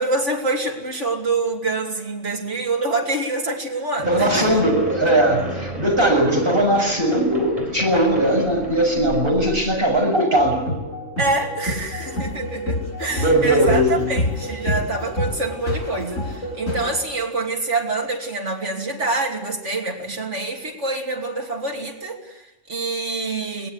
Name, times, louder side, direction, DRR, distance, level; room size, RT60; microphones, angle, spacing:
voice 1, 0.0-4.6 11.2-23.7, right 3 dB, 70° right, 2 dB, 3.2 m, -26 dB
sound 1, 4.0-10.0, right 1 dB, 30° right, 4.2 m, -34 dB
voice 2, 4.1-10.6 13.1-14.1, right 1 dB, 45° right, 1 dB, 7.0 m, -19 dB
sound 2, 10.4-17.0, left 1 dB, 90° left, 6.1 m, -27 dB
23.5 x 19.5 x 8.3 m, 1.0 s
omnidirectional pair, 1.3 m